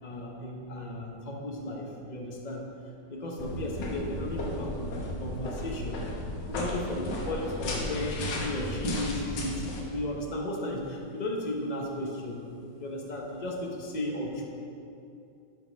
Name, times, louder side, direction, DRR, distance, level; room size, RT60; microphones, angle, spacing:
voice 1, 0.0-2.7 3.1-6.0 6.5-12.4 12.8-14.4, left 1 dB, 35° left, 0 dB, 0.7 m, -35 dB
sound 1, 3.4-9.8, left 1 dB, 80° left, 1.7 m, -34 dB
7.6 x 5.3 x 5.1 m, 2.6 s
omnidirectional pair, 1.9 m